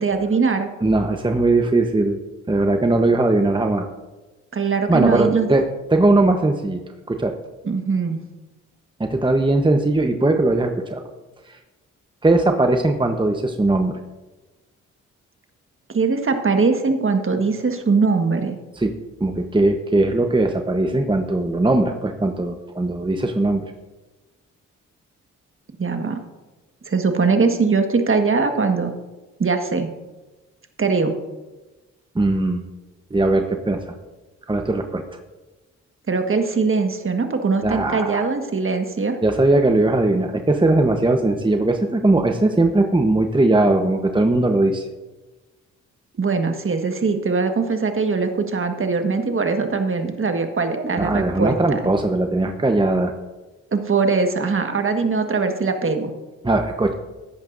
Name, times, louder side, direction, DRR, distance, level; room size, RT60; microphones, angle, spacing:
voice 1, 0.0-0.7 4.5-5.5 7.6-8.2 15.9-18.6 25.8-26.2 26.9-28.9 29.4-29.9 30.8-31.1 36.1-39.2 46.2-51.8 53.7-56.1, right 4 dB, 40° right, 6 dB, 1.6 m, -21 dB
voice 2, 0.8-2.2 2.5-3.9 4.9-5.6 5.9-6.8 7.1-7.4 9.0-11.0 12.2-14.0 18.8-18.9 19.2-23.6 32.1-32.6 33.1-33.8 34.5-35.0 37.6-38.3 39.2-44.8 51.0-53.1 56.4-56.9, right 2 dB, 15° right, 5 dB, 1.0 m, -19 dB
14.0 x 10.5 x 2.6 m, 1.1 s
supercardioid pair, 50°, 33 cm